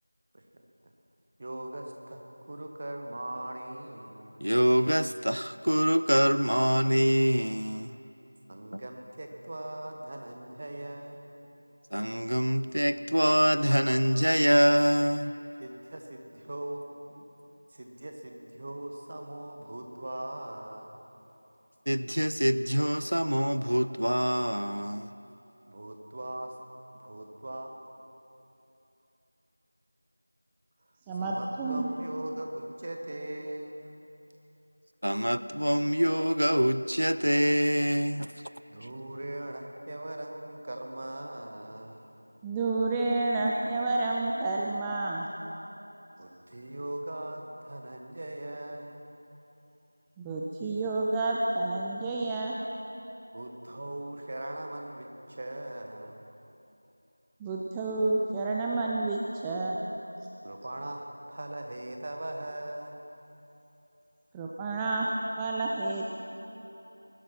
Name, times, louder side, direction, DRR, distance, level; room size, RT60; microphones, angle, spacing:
voice 1, 1.4-2.2 2.5-4.4 8.5-11.2 15.6-16.8 17.1-17.2 17.7-20.9 25.7-26.5 26.9-27.7 31.1-33.9 38.7-42.0 46.2-49.0 53.3-56.3 60.4-63.0, right 1 dB, 25° right, 3 dB, 1.1 m, -40 dB
voice 2, 4.4-7.9 11.9-15.3 21.9-25.1 35.0-38.3, equal, 75° right, 13 dB, 0.5 m, -25 dB
voice 3, 31.1-31.9 42.4-45.3 50.2-52.6 57.4-59.8 64.3-66.1, right 2 dB, 5° right, -3 dB, 0.3 m, -29 dB
20.0 x 11.5 x 6.0 m, 3.0 s
figure-of-eight pair, 175°, 0 cm